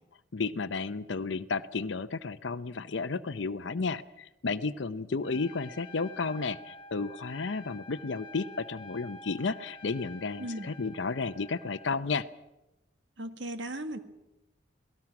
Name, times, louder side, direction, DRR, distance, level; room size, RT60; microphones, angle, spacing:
voice 1, 0.3-12.3, left 4 dB, 70° left, 10 dB, 0.7 m, -32 dB
Trumpet, 5.2-11.9, left 2 dB, 25° left, 1.6 m, -49 dB
voice 2, 10.4-10.7 13.2-14.0, right 1 dB, 65° right, 8 dB, 1.7 m, -36 dB
28.5 x 18.0 x 6.0 m, 0.95 s
head